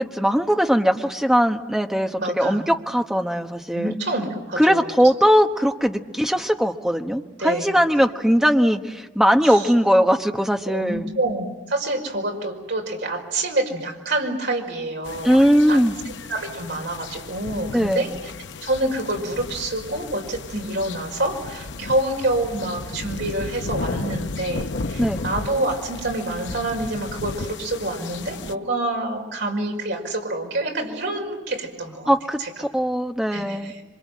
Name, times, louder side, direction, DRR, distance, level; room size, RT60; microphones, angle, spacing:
voice 1, 0.0-3.9 4.6-11.1 15.2-16.0 17.7-18.0 25.0-25.2 32.1-33.7, equal, 5° right, 4 dB, 1.2 m, -20 dB
voice 2, 2.2-2.7 3.7-5.0 7.4-7.7 9.4-9.7 10.7-15.8 16.3-18.3 18.6-32.1 32.4-32.5 33.3-33.8, right 2 dB, 70° right, 1 dB, 5.4 m, -27 dB
sound 1, 15.0-28.5, left 3 dB, 75° left, 0.8 m, -34 dB
27.0 x 25.5 x 7.5 m, 1.2 s
head